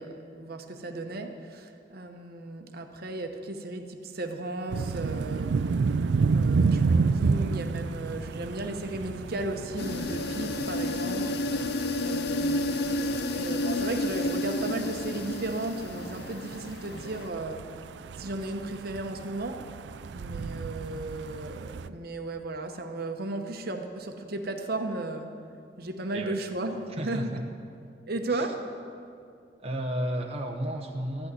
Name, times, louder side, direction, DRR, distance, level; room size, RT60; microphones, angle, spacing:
voice 1, 0.0-5.5 6.3-11.4 12.0-17.6 18.2-19.6 20.1-25.3 25.8-27.2 28.1-28.6, right 2 dB, 60° right, 5 dB, 0.9 m, -35 dB
sound 1, 4.7-21.9, right 4 dB, 75° right, 0.4 m, -31 dB
sound 2, 9.8-17.3, left 2 dB, 65° left, 0.6 m, -31 dB
voice 2, 26.9-27.4 28.3-28.5 29.6-31.3, right 1 dB, 35° right, 1 dB, 0.8 m, -33 dB
14.0 x 6.2 x 9.2 m, 2.4 s
head